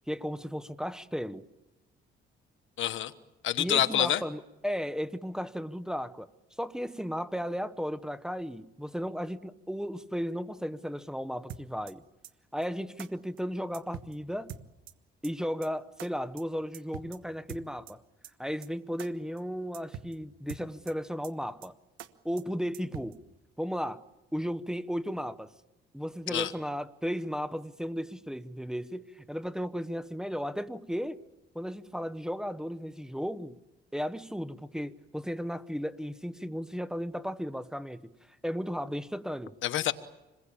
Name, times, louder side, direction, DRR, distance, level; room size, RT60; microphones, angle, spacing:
voice 1, 0.1-1.4 3.6-6.3 6.6-12.0 12.5-14.5 15.2-18.0 18.4-21.7 22.2-23.2 23.6-24.0 24.3-25.5 25.9-31.2 31.5-33.6 33.9-38.1 38.4-39.6, equal, 5° right, 1.0 m, -35 dB
voice 2, 2.8-3.1 3.4-4.2 26.3-26.5 39.6-39.9, left 12 dB, 75° left, 1.3 m, -27 dB
sound 1, 11.5-11.9 12.2-12.3 12.6-12.7 13.0-13.1 13.4-13.5 13.7-14.1 14.5-14.9 15.2-15.3 15.6-15.7 16.0-16.1 16.4-16.5 16.7-17.2 17.5-17.9 18.2-18.3 18.6-18.7 19.0-19.1 19.4-19.5 19.7-20.1 20.5-20.9 21.2-21.3 21.6-21.7 22.0-22.1 22.4-22.5 22.7-23.1, right 9 dB, 90° right, 1.3 m, -43 dB
27.5 x 21.5 x 8.6 m
cardioid pair, 90°, 20 cm